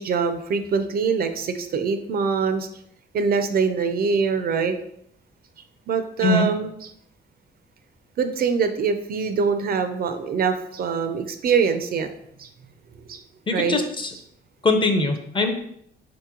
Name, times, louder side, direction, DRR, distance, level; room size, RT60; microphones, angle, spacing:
voice 1, 0.0-2.7 3.1-4.8 5.9-6.9 8.2-12.1 12.4-12.5 13.0-13.2 13.5-13.8, right 5 dB, 50° right, 8 dB, 0.4 m, -24 dB
voice 2, 13.5-14.1 14.6-15.5, left 3 dB, 25° left, 5 dB, 0.6 m, -21 dB
4.1 x 2.9 x 3.7 m, 0.72 s
cardioid pair, 120°, 20 cm